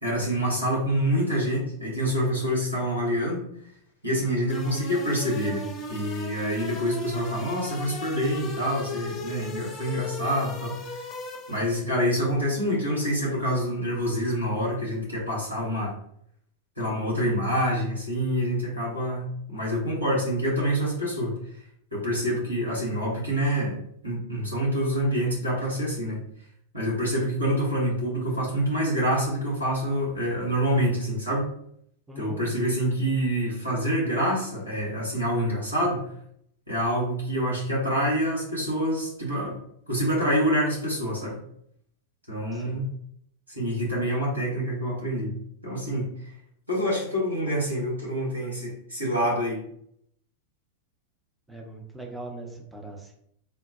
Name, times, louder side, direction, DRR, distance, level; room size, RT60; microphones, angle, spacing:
voice 1, 0.0-3.5 4.0-11.0 11.5-15.9 16.8-21.4 21.9-26.2 26.7-31.5 32.2-36.0 36.7-39.6 39.9-41.4 42.3-42.9 43.5-45.3 45.6-46.1 46.7-49.6, equal, 85° right, -6 dB, 1.3 m, -26 dB
sound 1, 4.5-11.9, left 2 dB, 35° left, 0.6 m, -37 dB
voice 2, 32.1-32.5 42.5-42.8 51.5-53.1, right 2 dB, 5° right, 0 dB, 0.7 m, -40 dB
3.8 x 2.1 x 2.7 m, 0.69 s
figure-of-eight pair, 90°, 0 cm